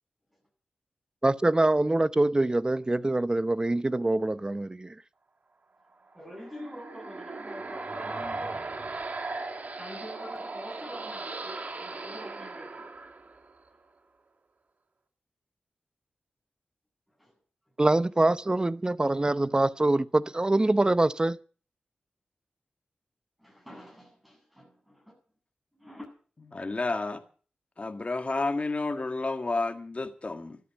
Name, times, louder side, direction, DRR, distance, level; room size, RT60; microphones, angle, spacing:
voice 1, 1.2-4.9 17.8-21.4, right 2 dB, 25° right, 0.7 m, -24 dB
voice 2, 6.1-8.7 9.8-12.9 17.2-17.3 23.4-25.1 25.7-26.0, equal, 5° right, 7.7 m, -45 dB
sound 1, 6.1-13.7, right 3 dB, 50° right, 2.6 m, -38 dB
voice 3, 26.5-27.2 27.8-30.6, left 3 dB, 40° left, 1.8 m, -30 dB
12.5 x 12.5 x 7.1 m
cardioid pair, 60°, 3 cm